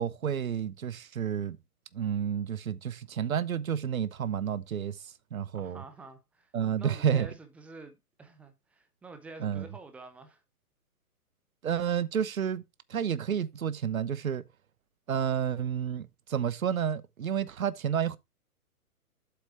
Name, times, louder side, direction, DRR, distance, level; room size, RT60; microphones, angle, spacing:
voice 1, 0.0-1.6 1.9-5.0 5.3-5.8 6.5-7.3 9.4-9.7 11.6-12.6 12.9-14.4 15.1-18.2, right 8 dB, 65° right, 1.0 m, -30 dB
voice 2, 5.5-6.5 6.8-10.4, right 3 dB, 5° right, 0.6 m, -48 dB
8.3 x 6.2 x 4.6 m
figure-of-eight pair, 120°, 45 cm